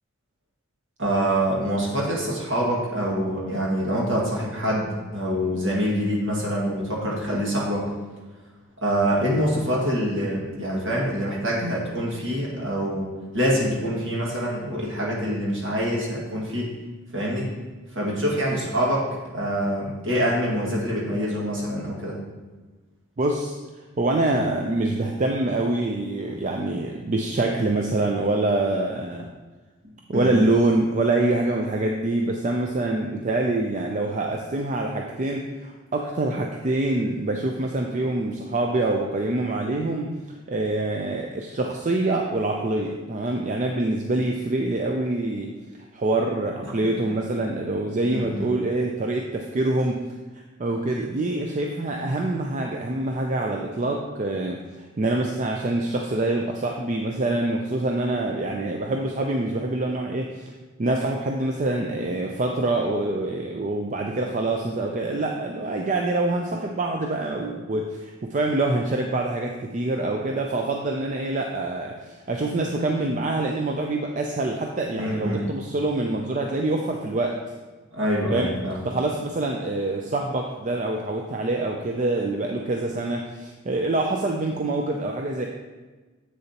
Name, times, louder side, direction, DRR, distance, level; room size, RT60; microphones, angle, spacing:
voice 1, 1.0-7.8 8.8-13.1 13.3-16.8 17.1-17.5 17.9-22.2 30.1-30.3 46.8-46.9 48.1-48.5 74.9-75.4 77.9-78.8, equal, 60° right, -4 dB, 1.9 m, -25 dB
voice 2, 23.2-23.5 24.0-29.3 30.1-40.1 40.5-45.6 45.9-50.1 50.6-60.5 60.8-77.4 78.3-78.5 78.8-85.5, right 2 dB, 35° right, 2 dB, 0.4 m, -25 dB
7.7 x 6.7 x 2.9 m, 1.3 s
head